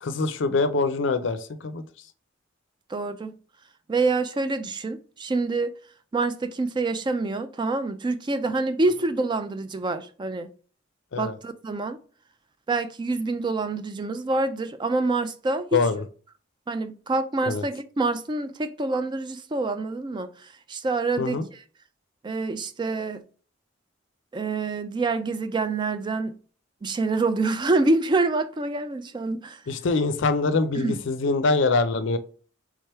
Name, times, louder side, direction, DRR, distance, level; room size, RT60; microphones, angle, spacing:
voice 1, 0.0-1.8 11.1-11.3 15.7-16.0 17.5-17.6 21.2-21.4 29.7-32.2, left 3 dB, 65° left, 0.5 m, -24 dB
voice 2, 2.9-3.4 3.9-5.7 6.1-10.5 11.2-12.0 12.7-15.8 16.7-21.6 22.2-23.2 24.3-26.4 26.8-29.6 30.8-31.0, right 3 dB, 25° right, 0.3 m, -26 dB
3.6 x 3.3 x 4.3 m
head